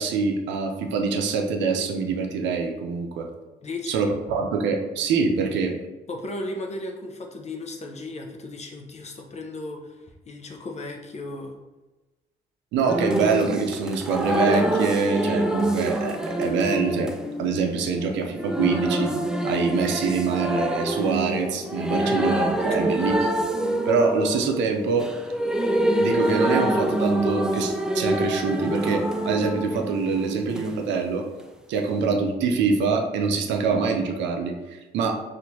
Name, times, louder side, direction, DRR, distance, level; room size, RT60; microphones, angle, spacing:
voice 1, 0.0-3.3 3.9-5.8 12.7-17.1 17.4-19.1 19.4-23.5 23.9-25.1 26.0-31.3 31.7-35.2, right 5 dB, 85° right, 3 dB, 0.5 m, -25 dB
voice 2, 3.6-4.1 6.1-11.6 22.0-22.2 22.7-23.0, left 2 dB, 35° left, 2 dB, 0.7 m, -35 dB
sound 1, 12.9-30.7 32.0-32.1, right 1 dB, 5° right, 0.3 m, -26 dB
4.3 x 2.6 x 2.7 m, 1.1 s
cardioid pair, 70°, 19 cm